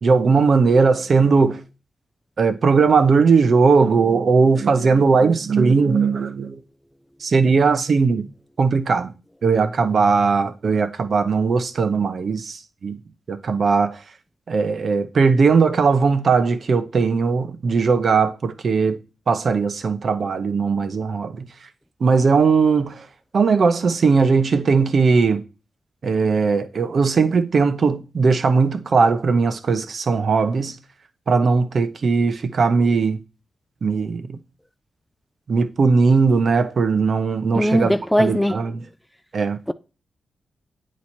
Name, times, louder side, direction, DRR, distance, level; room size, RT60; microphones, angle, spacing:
voice 1, 0.0-1.6 2.4-6.6 7.2-8.3 8.6-9.1 9.4-13.0 13.3-14.0 14.5-19.0 19.3-21.5 22.0-23.0 23.3-25.4 26.0-30.8 31.3-33.2 33.8-34.4 35.5-38.8 39.3-39.6, right 4 dB, 55° right, 0.7 m, -18 dB
voice 2, 37.5-38.6, equal, 5° left, 0.3 m, -19 dB
8.4 x 3.1 x 4.2 m
cardioid pair, 70°, 0 cm